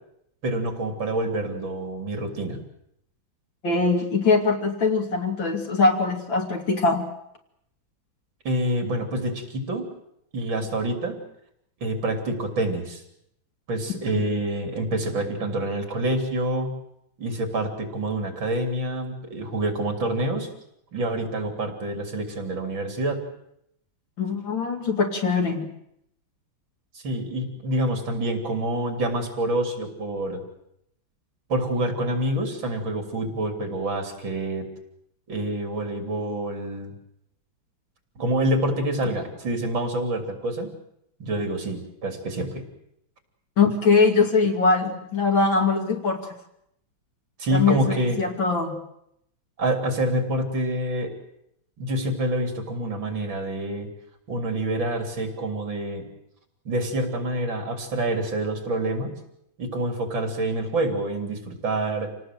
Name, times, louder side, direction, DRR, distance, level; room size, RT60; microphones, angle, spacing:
voice 1, 0.4-2.6 8.4-9.9 10.3-11.2 11.8-13.0 13.7-16.7 17.2-20.5 20.9-23.2 26.9-30.4 31.5-34.7 35.3-36.9 38.2-40.7 41.2-42.6 47.4-48.2 49.6-51.1 51.8-53.9 54.3-56.1 56.7-59.1 59.6-62.1, right 1 dB, 75° right, 5 dB, 4.1 m, -27 dB
voice 2, 3.6-7.1 24.2-25.7 43.6-46.3 47.5-48.8, left 4 dB, 75° left, 3 dB, 3.3 m, -22 dB
27.0 x 18.5 x 7.7 m, 0.75 s
omnidirectional pair, 2.1 m